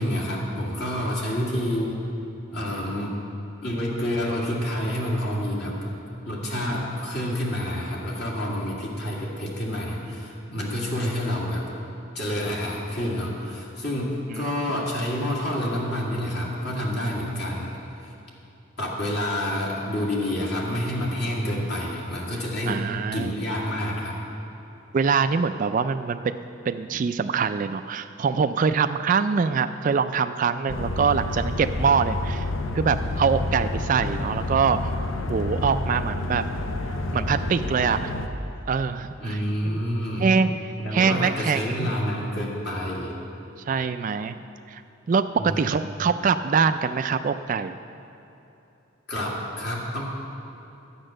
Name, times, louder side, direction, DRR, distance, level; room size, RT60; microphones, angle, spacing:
voice 1, 0.0-2.0 2.5-3.2 3.6-5.9 6.2-11.6 12.1-17.7 18.8-22.8 23.1-24.2 39.2-40.3 40.8-43.1 45.4-45.8 49.1-50.1, equal, 55° left, -4 dB, 2.1 m, -28 dB
voice 2, 22.7-23.4 24.9-26.4 26.7-32.5 32.8-35.0 35.3-36.4 37.1-38.1 38.7-39.4 40.2-41.9 43.7-44.4 44.7-44.8 45.1-47.7, right 5 dB, 40° right, 9 dB, 0.3 m, -24 dB
sound 1, 30.7-38.3, left 2 dB, 85° left, 0.8 m, -29 dB
12.0 x 8.8 x 6.4 m, 2.9 s
head